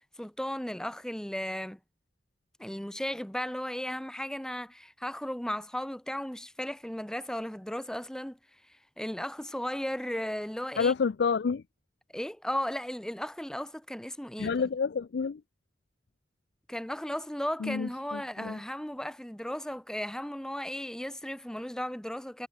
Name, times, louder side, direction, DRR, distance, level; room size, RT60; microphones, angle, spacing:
voice 1, 0.0-1.8 2.6-8.4 8.7-10.9 12.1-14.5 16.7-22.5, equal, 5° left, 0.6 m, -35 dB
voice 2, 10.8-11.6 14.4-15.4 17.6-18.6, left 5 dB, 60° left, 0.4 m, -29 dB
head